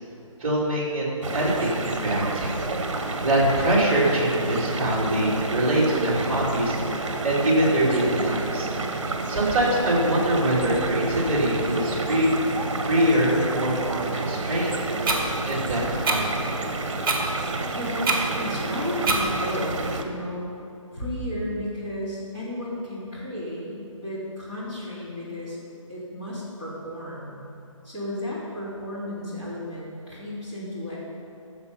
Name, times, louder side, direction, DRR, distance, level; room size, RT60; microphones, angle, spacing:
voice 1, 0.4-2.5 2.9-8.7 9.3-12.3 12.8-15.1 15.4-16.5, right 1 dB, 20° right, -8 dB, 2.9 m, -24 dB
sound 1, 1.2-20.0, right 3 dB, 60° right, 1.3 m, -30 dB
sound 2, 15.0-15.2 16.0-16.2 17.0-17.2 18.0-18.2 19.0-19.2, right 4 dB, 40° right, 1.8 m, -23 dB
voice 2, 17.7-20.5 20.9-25.6 25.9-27.3 27.8-31.0, left 1 dB, 15° left, -10 dB, 2.9 m, -33 dB
14.5 x 6.9 x 5.6 m, 2.7 s
hypercardioid pair, 175°, 17 cm